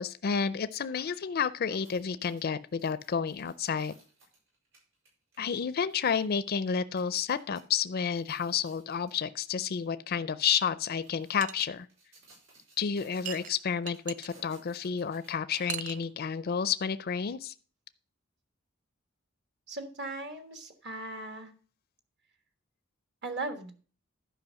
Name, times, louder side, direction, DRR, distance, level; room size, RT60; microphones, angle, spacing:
voice 1, 0.0-3.9 5.4-11.9 12.8-17.5, left 6 dB, 50° left, 14 dB, 0.4 m, -30 dB
sound 1, 1.6-7.6 8.0-9.2 9.7-9.9 10.7-15.8 16.2-16.3, right 2 dB, 75° right, 6.3 m, -61 dB
sound 2, 11.4-11.7 13.2-14.3 15.5-16.0, right 9 dB, 40° right, 0.4 m, -38 dB
voice 2, 19.7-21.5 23.2-23.7, right 2 dB, 55° right, 7 dB, 1.4 m, -38 dB
11.5 x 5.1 x 6.3 m, 0.40 s
head